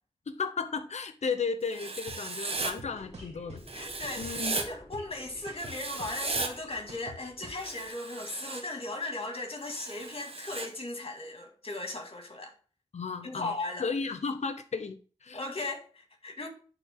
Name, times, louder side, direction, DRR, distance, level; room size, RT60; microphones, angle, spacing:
voice 1, 0.3-3.6 4.2-4.6 12.9-13.5 13.8-15.4, left 5 dB, 75° left, 0.8 m, -34 dB
Writing, 1.7-2.7 3.7-4.6 5.6-6.5 7.6-8.6 9.6-10.7, right 3 dB, 60° right, 1.2 m, -36 dB
sound 1, 2.1-2.2 2.6-3.6 4.0-5.1 5.5-7.6, right 1 dB, 75° right, 2.1 m, -46 dB
sound 2, 2.5-7.9, left 1 dB, 25° left, 3.8 m, -53 dB
voice 2, 3.7-12.5 13.2-13.9 15.3-16.5, left 2 dB, 55° left, 2.0 m, -37 dB
11.0 x 3.7 x 3.6 m
cardioid pair, 40°, 11 cm